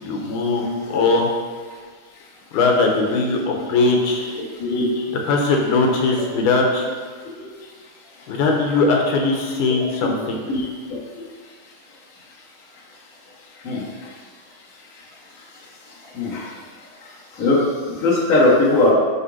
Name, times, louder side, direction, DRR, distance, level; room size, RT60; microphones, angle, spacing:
voice 1, 0.0-1.3 2.5-4.3 5.3-6.9 8.3-10.4, left 3 dB, 85° left, 0 dB, 2.4 m, -20 dB
voice 2, 16.1-16.5 17.4-17.6 18.0-18.9, left 2 dB, 35° left, -6 dB, 1.4 m, -18 dB
8.1 x 2.8 x 6.2 m, 1.6 s
omnidirectional pair, 3.6 m